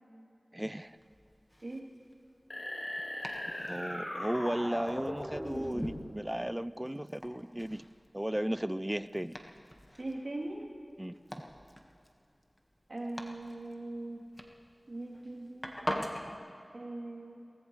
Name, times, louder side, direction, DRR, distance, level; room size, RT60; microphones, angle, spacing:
voice 1, 0.5-1.0 3.6-7.8 8.1-9.4 11.0-11.1, right 1 dB, 15° right, 15 dB, 0.5 m, -35 dB
Domestic sounds home sounds, 0.8-16.3, equal, 15° left, 1.6 m, -45 dB
sound 1, 2.5-6.0, left 1 dB, 75° left, 4.7 m, -38 dB
voice 2, 10.0-10.6 12.9-14.2 14.9-15.7 16.7-17.4, right 2 dB, 70° right, -5 dB, 3.3 m, -40 dB
23.5 x 18.5 x 3.3 m, 2.6 s
wide cardioid pair, 45°, 0 cm